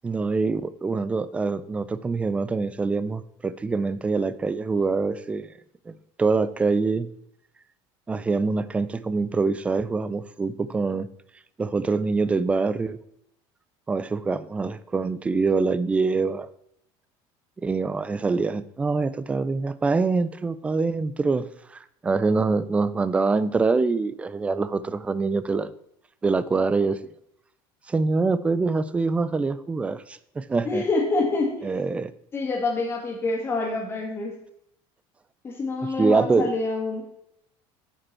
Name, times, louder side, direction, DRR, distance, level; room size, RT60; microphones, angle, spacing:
voice 1, 0.0-5.5 5.9-7.1 8.1-11.1 11.6-13.0 13.9-16.5 17.6-21.4 21.7-25.7 26.2-27.0 27.9-30.8 31.6-32.1 36.0-36.5, right 4 dB, 10° right, 16 dB, 0.3 m, -25 dB
voice 2, 30.6-31.7 32.3-34.3 35.4-37.0, left 3 dB, 20° left, 1 dB, 2.0 m, -26 dB
9.7 x 5.2 x 4.3 m, 0.75 s
cardioid pair, 150°, 11 cm